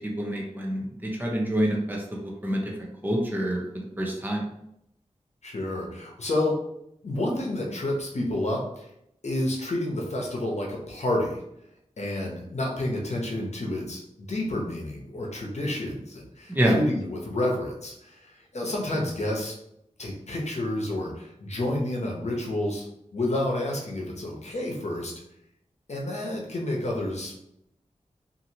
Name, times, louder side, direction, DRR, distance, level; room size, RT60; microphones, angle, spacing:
voice 1, 0.0-4.4 16.5-16.8, right 1 dB, 15° right, -1 dB, 0.7 m, -27 dB
voice 2, 5.4-6.6 7.0-8.9 9.2-11.4 12.0-19.5 20.0-22.9 23.1-25.1 25.9-27.3, left 1 dB, 65° left, -1 dB, 0.8 m, -29 dB
2.9 x 2.7 x 2.7 m, 0.78 s
wide cardioid pair, 75°, 12 cm